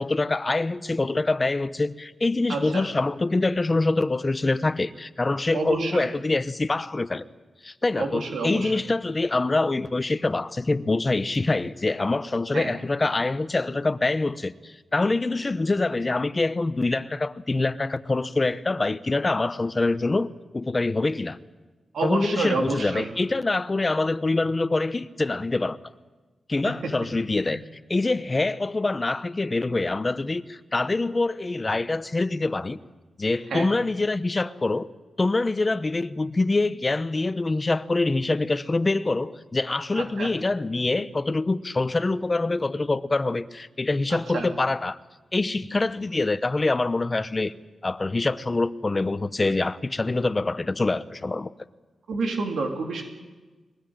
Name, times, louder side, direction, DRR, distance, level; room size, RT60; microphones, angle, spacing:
voice 1, 0.0-7.2 7.6-20.3 20.5-21.4 22.0-25.8 26.5-27.6 27.9-32.8 33.2-34.9 35.2-45.0 45.3-47.5 47.8-51.5, left 2 dB, 25° left, 0.9 m, -25 dB
voice 2, 2.5-2.9 5.5-6.1 8.0-8.7 12.5-12.7 21.9-23.1 26.6-26.7 27.5-27.6 33.5-33.7 39.9-40.3 44.1-44.5 52.1-53.0, right 3 dB, 80° right, 3.4 m, -29 dB
22.0 x 20.0 x 9.0 m
cardioid pair, 90°, 0 cm